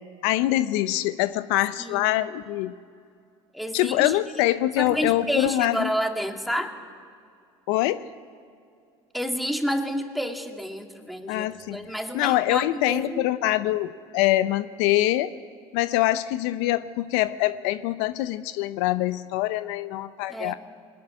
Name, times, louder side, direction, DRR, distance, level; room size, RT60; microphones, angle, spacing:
voice 1, 0.2-2.7 3.7-5.9 7.7-8.0 11.3-11.8 12.1-15.3 15.7-20.5, left 15 dB, 75° left, 13 dB, 0.7 m, -24 dB
voice 2, 1.8-2.1 3.5-4.2 4.8-6.8 9.1-13.3 20.3-20.6, equal, ahead, 3 dB, 2.3 m, -30 dB
21.0 x 14.5 x 9.9 m, 2.3 s
hypercardioid pair, 75°, 15 cm